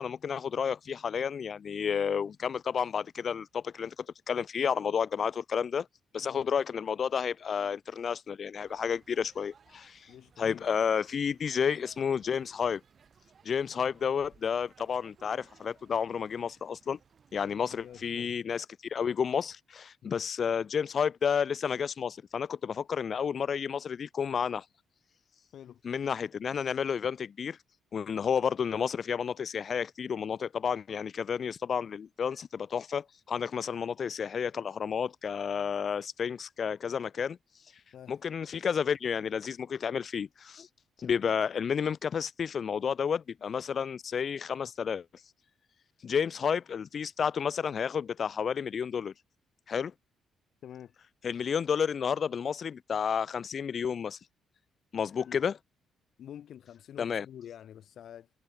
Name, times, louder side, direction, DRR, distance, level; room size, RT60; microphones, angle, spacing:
voice 1, 0.0-3.9 4.3-5.9 6.1-10.1 10.4-12.8 13.4-17.0 17.3-24.6 25.8-27.6 27.9-37.4 38.1-40.7 41.0-45.1 46.0-49.1 49.7-49.9 51.2-54.2 54.9-55.5 57.0-57.3, left 7 dB, 50° left, 0.5 m, -31 dB
sound 1, 8.5-18.4, right 6 dB, 45° right, 6.4 m, -62 dB
voice 2, 10.1-10.7 17.7-18.4 20.0-20.3 25.5-25.8 37.9-38.2 50.6-50.9 55.3-55.4 56.2-58.3, left 10 dB, 65° left, 3.3 m, -48 dB
cardioid pair, 90°, 0 cm